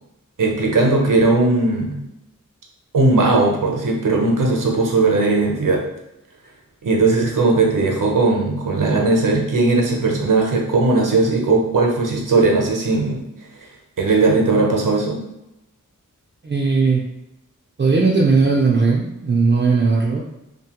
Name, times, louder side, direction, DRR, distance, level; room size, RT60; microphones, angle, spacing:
voice 1, 0.4-2.0 2.9-5.8 6.8-13.2 14.0-15.2, right 3 dB, 75° right, 0 dB, 0.7 m, -18 dB
voice 2, 16.4-17.0 17.8-20.2, right 4 dB, 35° right, -3 dB, 0.4 m, -17 dB
2.7 x 2.2 x 2.9 m, 0.87 s
wide cardioid pair, 45°, 32 cm